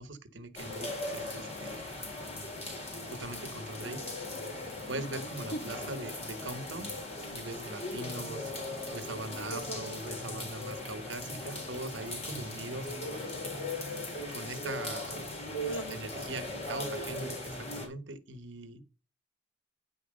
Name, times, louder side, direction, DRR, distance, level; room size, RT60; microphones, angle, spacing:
voice 1, 0.0-2.0 3.1-4.0 4.9-6.9 7.3-8.5 8.9-13.3 14.3-15.2 15.6-18.8, right 2 dB, 70° right, 1.2 m, -41 dB
sound 1, 0.5-17.9, left 1 dB, 35° left, 3.8 m, -39 dB
voice 2, 4.9-5.6 9.5-9.9 15.7-16.6, right 1 dB, 70° left, 1.8 m, -41 dB
9.7 x 4.8 x 6.3 m
head